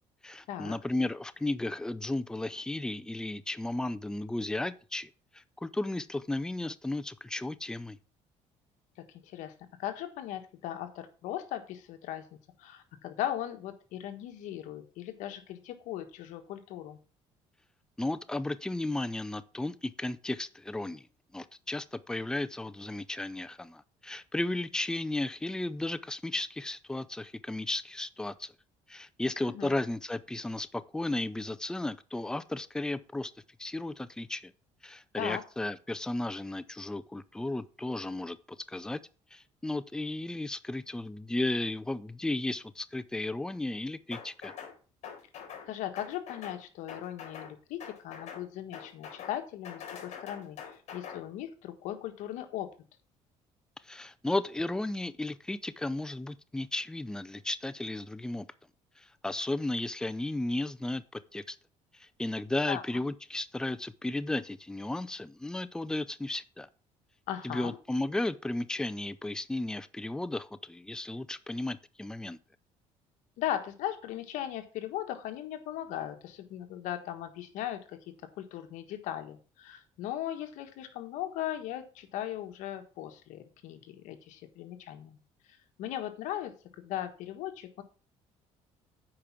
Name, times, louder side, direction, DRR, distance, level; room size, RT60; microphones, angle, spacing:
voice 1, 0.2-8.0 18.0-21.0 21.3-28.5 28.9-33.3 33.6-34.5 34.8-38.4 38.7-39.0 39.3-44.5 53.8-58.5 59.0-61.6 61.9-66.7 67.4-72.4, left 2 dB, 5° left, 0.5 m, -34 dB
voice 2, 9.8-12.2 12.6-17.0 29.4-29.7 35.2-35.4 45.6-52.7 62.7-62.8 67.3-67.8 73.4-78.0 78.4-85.2 85.8-87.8, left 12 dB, 85° left, 1.4 m, -38 dB
sound 1, 44.1-44.7 45.0-45.7 46.0-46.6 46.9-47.5 47.8-48.4 48.7-49.4 49.6-51.2, left 7 dB, 65° left, 4.1 m, -44 dB
8.7 x 5.0 x 5.9 m
cardioid pair, 120°, 13 cm